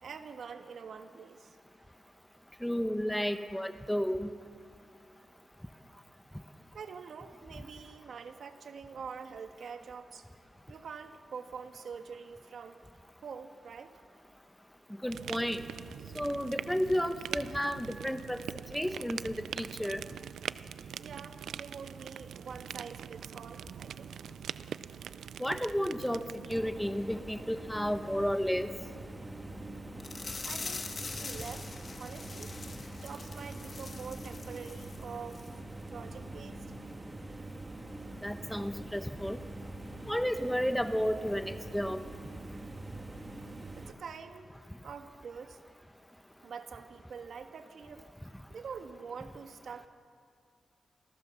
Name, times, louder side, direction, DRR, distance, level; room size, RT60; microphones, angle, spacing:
voice 1, 0.0-1.6 6.7-10.3 10.7-12.8 13.2-14.0 21.0-24.2 30.4-31.7 32.0-32.5 33.0-35.5 35.9-36.6 43.7-44.5 44.8-45.6 46.4-48.1 48.5-49.9, right 6 dB, 65° right, 7 dB, 1.4 m, -45 dB
voice 2, 2.6-4.3 15.0-15.6 16.1-18.4 18.7-20.0 25.4-26.2 26.5-28.7 38.2-39.4 40.1-42.0, equal, 5° left, 9 dB, 1.0 m, -32 dB
sound 1, 15.1-26.6, right 8 dB, 85° right, 0.4 m, -43 dB
sound 2, 26.5-43.9, right 2 dB, 20° right, 1.7 m, -44 dB
sound 3, 30.0-35.0 35.3-35.5 35.9-36.0, left 4 dB, 40° left, 2.0 m, -43 dB
27.5 x 16.5 x 7.0 m, 2.3 s
cardioid pair, 105°, 0 cm